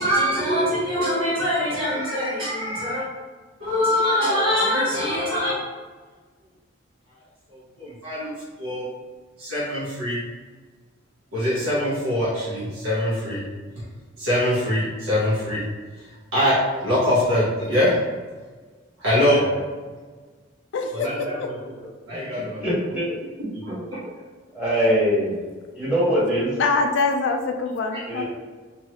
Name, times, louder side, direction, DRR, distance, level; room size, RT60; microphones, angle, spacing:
voice 1, 0.0-3.1 3.6-5.5 7.5-8.8 9.4-10.2 11.3-13.4 14.2-15.6 16.0-18.0 19.0-19.4 20.9-21.4 22.1-22.6 23.4-24.0, left 1 dB, 80° right, -8 dB, 1.0 m, -23 dB
voice 2, 20.7-21.5 26.6-28.2, left 3 dB, 65° left, 4 dB, 0.3 m, -24 dB
voice 3, 22.3-23.1 24.5-25.4 25.7-26.5 28.1-28.2, equal, 5° right, -10 dB, 1.2 m, -23 dB
3.1 x 2.7 x 2.8 m, 1.4 s
head